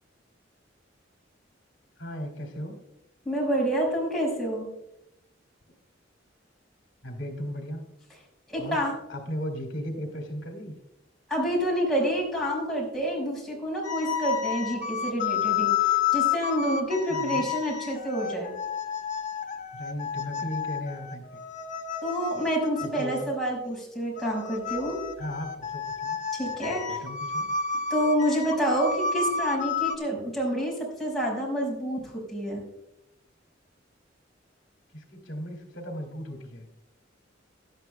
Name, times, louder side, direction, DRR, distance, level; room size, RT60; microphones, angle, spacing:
voice 1, 2.0-2.8 7.0-7.9 8.6-8.8 9.1-10.8 17.1-17.5 19.7-21.4 22.8-23.2 25.2-26.2 26.9-27.5 34.9-36.7, equal, 70° left, 3 dB, 2.2 m, -36 dB
voice 2, 3.2-4.7 8.5-8.9 11.3-15.7 16.1-18.5 22.0-25.0 26.3-27.0 27.9-32.6, equal, ahead, -4 dB, 5.0 m, -28 dB
sound 1, 13.8-23.4 24.2-30.0, left 7 dB, 40° left, 1.1 m, -30 dB
17.5 x 11.5 x 2.2 m, 0.86 s
head